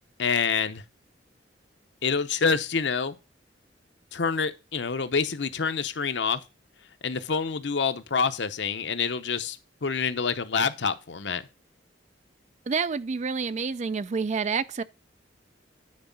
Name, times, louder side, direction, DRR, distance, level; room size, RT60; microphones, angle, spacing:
voice 1, 0.2-0.8 2.0-3.2 4.1-6.4 7.0-11.4, left 5 dB, 70° left, 0.8 m, -27 dB
voice 2, 12.7-14.8, right 5 dB, 40° right, 0.4 m, -28 dB
9.6 x 4.7 x 5.2 m
head